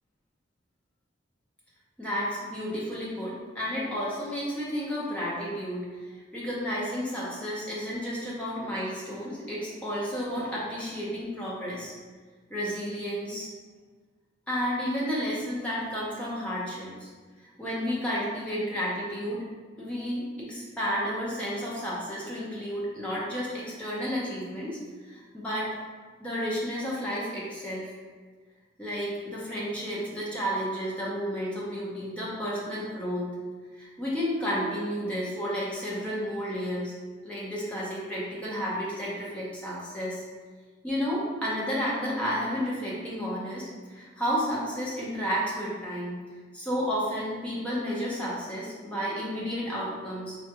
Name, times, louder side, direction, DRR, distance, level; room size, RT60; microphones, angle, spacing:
voice 1, 2.0-11.9 12.5-13.5 14.5-17.1 17.6-19.5 19.8-24.8 25.0-25.7 26.2-27.9 28.8-33.3 33.7-36.9 37.2-40.2 40.8-46.2 46.5-50.4, equal, 5° left, -7 dB, 0.6 m, -32 dB
3.4 x 2.2 x 2.8 m, 1.4 s
head